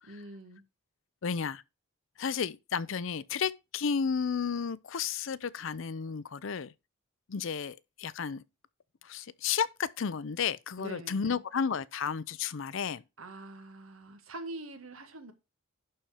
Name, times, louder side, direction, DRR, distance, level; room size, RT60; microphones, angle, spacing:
voice 1, 0.1-0.6 10.8-11.4 13.2-15.3, right 2 dB, 80° right, 1.8 m, -44 dB
voice 2, 1.2-1.6 2.2-6.7 7.3-8.4 9.0-13.0, left 6 dB, 65° left, 0.5 m, -32 dB
11.5 x 4.4 x 4.9 m
head